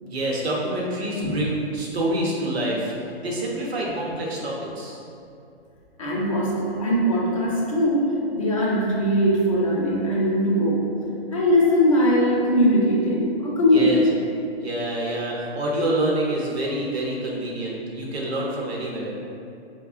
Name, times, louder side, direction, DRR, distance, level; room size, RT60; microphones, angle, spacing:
voice 1, 0.0-5.0 13.7-14.0 14.6-19.1, right 1 dB, 75° right, -4 dB, 0.8 m, -27 dB
voice 2, 6.0-10.9 11.3-14.1, equal, 35° left, -5 dB, 0.5 m, -20 dB
4.1 x 2.1 x 2.4 m, 2.6 s
hypercardioid pair, 175°, 32 cm